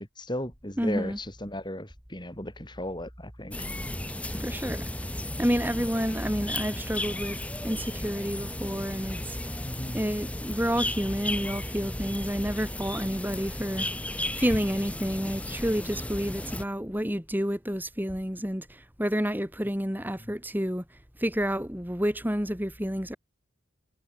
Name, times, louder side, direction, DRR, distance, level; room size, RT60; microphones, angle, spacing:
voice 1, 0.0-3.7 9.6-10.0 16.4-16.5 20.2-20.3, left 1 dB, 20° left, 6.0 m, -36 dB
voice 2, 0.8-1.2 4.4-4.9 5.4-9.4 9.9-13.9 14.3-23.2, equal, 10° right, 4.8 m, -29 dB
sound 1, 3.5-16.6, left 1 dB, 5° left, 2.1 m, -34 dB
head